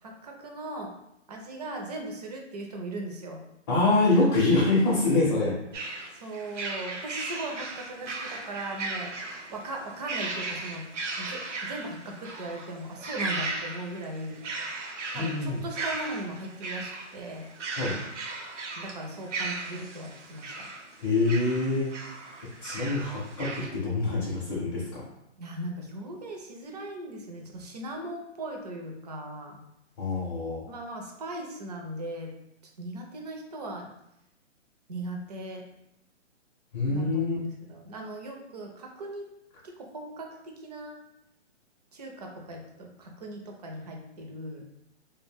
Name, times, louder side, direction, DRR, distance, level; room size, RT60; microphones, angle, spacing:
voice 1, 0.0-0.9 1.3-3.4 6.1-10.9 11.2-14.4 15.1-17.5 18.8-20.7 25.4-29.6 30.7-32.4 32.8-33.9 34.9-35.7 36.9-39.3 39.6-41.0 41.9-44.6, right 1 dB, 35° right, 1 dB, 0.4 m, -38 dB
voice 2, 3.7-5.6 15.1-15.6 17.8-18.0 21.0-21.9 22.6-25.0 30.0-30.6 36.7-37.4, left 2 dB, 25° left, -8 dB, 0.5 m, -25 dB
sound 1, 5.7-23.7, right 3 dB, 80° right, 0.7 m, -37 dB
2.2 x 2.1 x 3.3 m, 0.84 s
hypercardioid pair, 155°, 36 cm